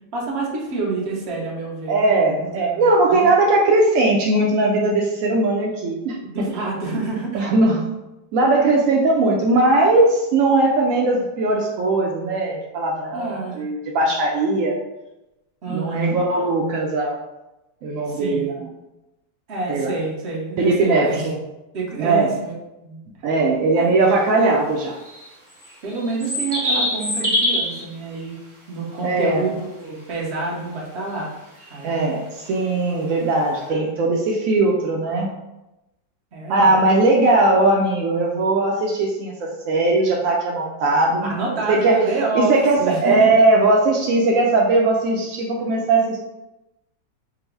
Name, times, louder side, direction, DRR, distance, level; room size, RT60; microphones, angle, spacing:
voice 1, 0.1-3.3 6.2-7.5 13.1-13.6 15.6-16.2 18.1-18.6 19.5-21.3 21.7-22.5 22.8-23.0 23.7-24.0 25.8-28.3 28.7-31.3 31.7-32.2 33.1-33.3 33.6-34.1 36.3-36.9 41.2-43.3, right 3 dB, 50° right, -3 dB, 0.9 m, -28 dB
voice 2, 1.9-6.5 7.3-7.9 8.3-14.8 15.7-17.2 17.8-18.7 19.7-19.9 20.6-21.4 22.0-22.3 23.2-25.0 29.0-29.4 31.8-35.3 36.5-41.3 41.7-42.0 42.4-46.2, right 2 dB, 80° right, -1 dB, 0.7 m, -19 dB
sound 1, 24.1-24.2 25.0-27.8 31.6-31.8 32.4-32.5 33.6-33.7, left 1 dB, 20° right, 0.8 m, -24 dB
3.8 x 2.0 x 4.4 m, 0.96 s
omnidirectional pair, 1.9 m